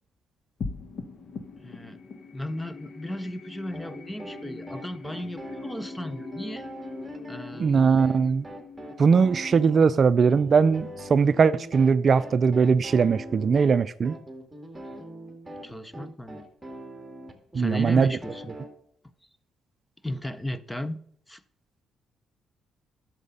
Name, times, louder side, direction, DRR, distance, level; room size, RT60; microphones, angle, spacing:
sound 1, 0.6-11.3, left 4 dB, 55° left, 1.1 m, -43 dB
voice 1, 1.6-2.0 2.3-6.7 7.3-8.1 15.6-16.5 17.5-18.5 20.0-21.0 21.3-21.4, left 1 dB, 10° left, 0.7 m, -35 dB
sound 2, 3.7-18.7, right 1 dB, 10° right, 2.4 m, -42 dB
voice 2, 7.6-8.5 9.0-14.2 17.5-18.1, right 5 dB, 45° right, 0.4 m, -20 dB
11.0 x 7.3 x 5.5 m
cardioid pair, 90°, 0 cm